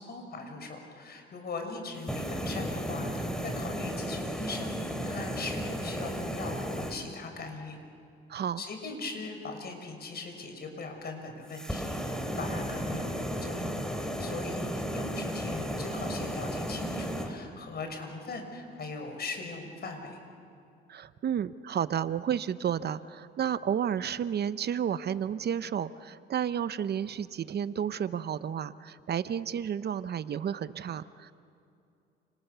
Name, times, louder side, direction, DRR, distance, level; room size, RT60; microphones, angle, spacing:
voice 1, 0.0-7.8 8.6-20.2, left 3 dB, 55° left, 4 dB, 6.2 m, -40 dB
sound 1, 2.0-7.0 11.5-17.3, equal, 5° left, 3.9 m, -34 dB
voice 2, 8.3-8.6 20.9-31.3, right 8 dB, 55° right, 14 dB, 0.8 m, -31 dB
30.0 x 28.0 x 6.9 m, 2.6 s
cardioid pair, 90°, 20 cm